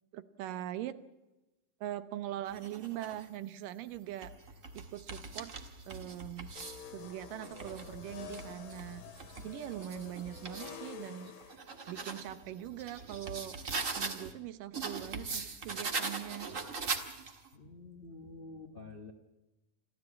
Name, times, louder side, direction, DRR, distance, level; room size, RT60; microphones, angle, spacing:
voice 1, 0.1-1.0 1.8-4.3 4.7-5.5 5.8-6.5 6.9-9.0 9.4-11.4 11.9-13.6 13.9-16.5, right 12 dB, 80° right, 14 dB, 2.6 m, -42 dB
sound 1, 2.5-3.2 3.9-6.9 7.3-10.8 11.3-14.3 14.7-17.5, right 4 dB, 35° right, 1.3 m, -41 dB
sound 2, 6.6-11.6, left 8 dB, 90° left, 3.8 m, -48 dB
voice 2, 17.5-19.1, left 3 dB, 70° left, 6 dB, 0.5 m, -48 dB
28.0 x 13.0 x 8.4 m, 1.0 s
omnidirectional pair, 3.9 m